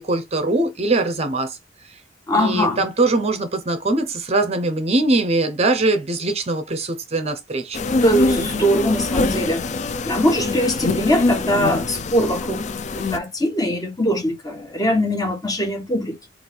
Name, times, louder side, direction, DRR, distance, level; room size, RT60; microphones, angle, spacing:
voice 1, 0.0-1.6 1.9-2.0 2.3-7.8, right 2 dB, 35° right, 0.6 m, -22 dB
voice 2, 2.3-2.8 7.9-9.6 10.0-12.6 12.9-16.2, equal, 20° left, 1.1 m, -21 dB
sound 1, 7.7-13.2, left 3 dB, 40° left, 0.4 m, -24 dB
4.5 x 2.4 x 3.3 m
head